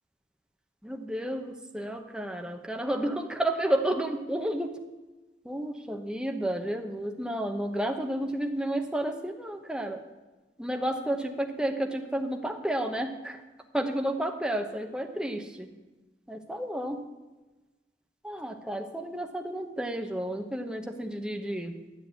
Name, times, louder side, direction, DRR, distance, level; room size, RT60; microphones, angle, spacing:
voice 1, 0.8-4.8 5.4-10.0 10.6-13.4 13.7-15.7 16.3-17.0 18.2-21.7, right 1 dB, 5° right, 3 dB, 0.8 m, -31 dB
10.5 x 7.5 x 8.2 m, 1.2 s
head